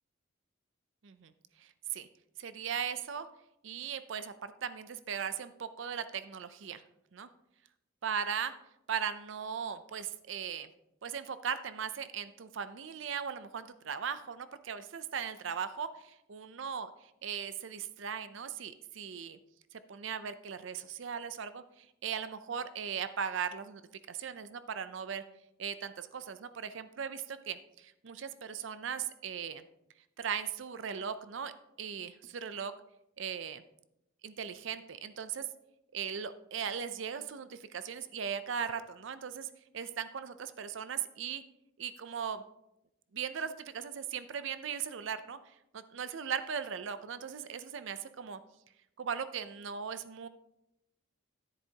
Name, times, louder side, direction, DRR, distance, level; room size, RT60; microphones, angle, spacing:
voice 1, 1.6-2.1 2.4-3.3 3.6-6.8 7.1-7.3 8.0-8.5 8.9-10.7 11.0-16.9 17.2-19.4 19.7-23.8 24.1-25.2 25.6-29.6 30.2-31.5 31.8-32.7 33.2-33.6 34.2-35.5 35.9-39.5 39.7-41.4 41.8-42.4 43.1-45.4 45.7-48.4 49.0-50.3, right 7 dB, 65° right, 12 dB, 0.5 m, -38 dB
10.5 x 9.7 x 2.8 m, 0.84 s
head